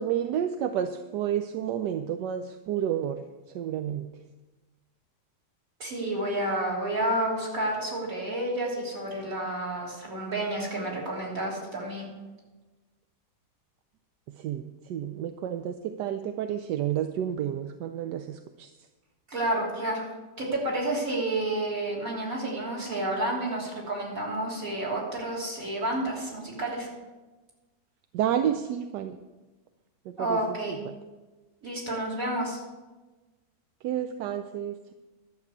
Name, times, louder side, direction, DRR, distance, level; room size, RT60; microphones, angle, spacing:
voice 1, 0.0-4.1 14.4-18.7 28.1-29.2 30.1-30.9 33.8-34.9, right 9 dB, 85° right, 8 dB, 1.3 m, -30 dB
voice 2, 5.8-12.1 19.3-20.1 20.4-26.9 30.2-30.8 31.6-32.6, right 1 dB, 55° right, -4 dB, 3.7 m, -30 dB
11.5 x 6.7 x 8.4 m, 1.2 s
omnidirectional pair, 1.8 m